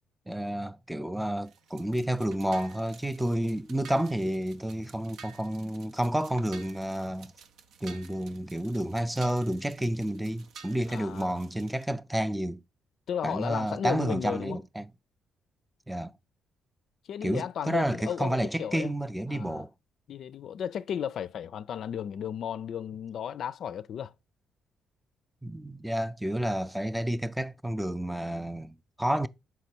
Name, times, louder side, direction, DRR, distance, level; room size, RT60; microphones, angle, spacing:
voice 1, 0.3-7.3 7.8-12.6 13.2-14.9 15.9-16.1 17.2-19.7 25.4-29.3, right 1 dB, 5° right, 0.4 m, -30 dB
sound 1, 1.4-11.8, right 6 dB, 80° right, 0.7 m, -52 dB
voice 2, 10.9-11.3 13.1-14.6 17.0-18.9 19.3-19.6 20.1-24.1, left 9 dB, 65° left, 0.3 m, -34 dB
5.8 x 4.1 x 4.5 m
cardioid pair, 90°, 0 cm